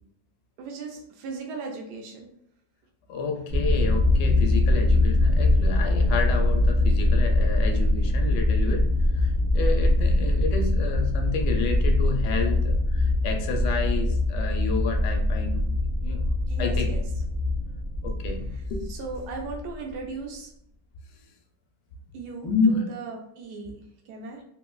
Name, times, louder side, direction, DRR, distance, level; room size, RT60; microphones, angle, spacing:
voice 1, 0.6-2.3 16.5-17.0 18.5-18.6 18.9-20.5 22.1-23.8 24.1-24.4, right 4 dB, 75° right, 1 dB, 1.1 m, -37 dB
voice 2, 3.1-8.9 9.1-16.2 16.6-16.9 18.0-18.8 22.4-22.8, left 4 dB, 75° left, 4 dB, 1.2 m, -30 dB
sound 1, 3.5-19.9, left 2 dB, 55° right, 0.8 m, -23 dB
3.5 x 2.8 x 2.3 m, 0.72 s
omnidirectional pair, 1.9 m